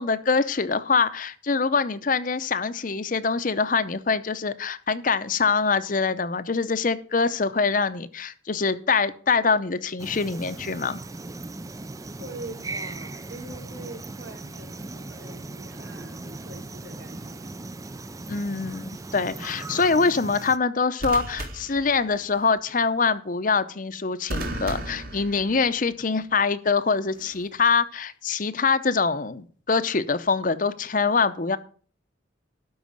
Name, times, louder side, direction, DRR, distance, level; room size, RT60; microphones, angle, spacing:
voice 1, 0.0-11.0 18.3-31.6, left 4 dB, 45° left, 0.7 m, -24 dB
sound 1, 10.0-20.6, right 2 dB, 15° right, 0.4 m, -38 dB
voice 2, 12.2-17.4 19.7-19.8, right 2 dB, 75° right, 3.9 m, -43 dB
sound 2, 17.1-17.5 21.0-22.5 24.3-26.0 27.2-27.5, right 1 dB, 50° right, 1.9 m, -35 dB
12.5 x 4.9 x 7.5 m
head